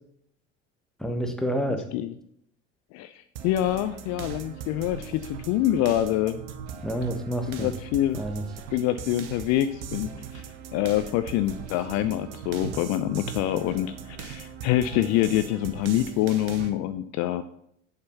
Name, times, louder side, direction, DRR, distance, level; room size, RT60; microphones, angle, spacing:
voice 1, 1.0-1.9 6.8-7.7 8.1-8.5, right 1 dB, ahead, 5 dB, 1.3 m, -29 dB
voice 2, 2.9-6.4 7.5-8.2 8.7-10.4 10.7-17.4, left 13 dB, 50° left, 12 dB, 0.5 m, -26 dB
sound 1, 3.4-16.7, right 7 dB, 70° right, 1.0 m, -40 dB
7.1 x 6.6 x 5.6 m, 0.71 s
figure-of-eight pair, 60°, 37 cm